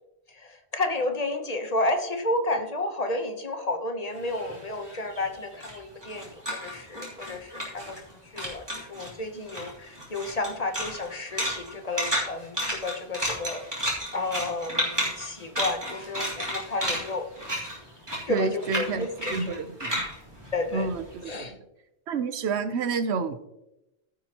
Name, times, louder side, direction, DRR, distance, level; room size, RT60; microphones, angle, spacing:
voice 1, 0.3-8.0 8.3-13.6 14.1-17.3 18.3-19.6 20.5-20.9 21.2-21.5, left 2 dB, 40° left, 6 dB, 1.0 m, -31 dB
sound 1, 4.2-8.1 8.4-9.1 9.5-21.3, equal, 25° right, 3.1 m, -32 dB
voice 2, 18.3-20.0 20.7-21.6 22.1-23.5, right 4 dB, 90° right, 11 dB, 1.1 m, -29 dB
15.0 x 7.5 x 2.9 m, 0.90 s
omnidirectional pair, 1.1 m